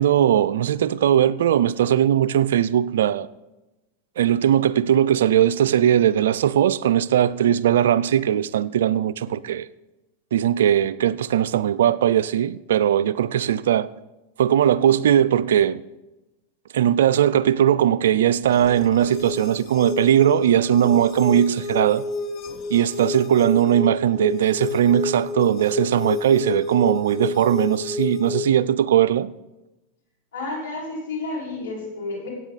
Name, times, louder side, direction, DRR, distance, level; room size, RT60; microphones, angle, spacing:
voice 1, 0.0-3.3 4.2-9.7 10.3-13.9 14.4-15.8 16.7-22.0 22.7-29.3, right 10 dB, 80° right, 0.4 m, -19 dB
sound 1, 18.5-28.5, left 4 dB, 40° left, 1.1 m, -30 dB
voice 2, 30.3-32.3, left 2 dB, 80° left, 4.9 m, -31 dB
15.0 x 8.9 x 4.1 m
hypercardioid pair, 105°, 0 cm